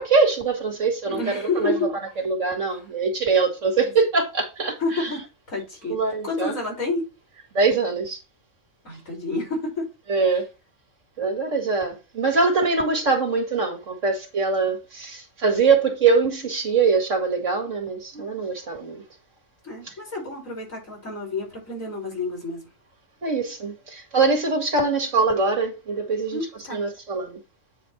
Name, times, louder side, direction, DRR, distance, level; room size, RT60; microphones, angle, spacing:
voice 1, 0.0-1.9 2.2-5.1 5.9-6.5 7.5-8.2 10.1-10.5 11.2-19.0 19.9-20.0 23.2-26.4 26.7-27.4, right 4 dB, 70° right, 2.1 m, -23 dB
voice 2, 1.0-1.9 2.7-2.8 3.8-3.9 4.8-7.1 8.8-9.9 19.6-22.7 26.3-26.8, left 3 dB, 85° left, 5.5 m, -29 dB
9.2 x 4.3 x 4.5 m
omnidirectional pair, 1.3 m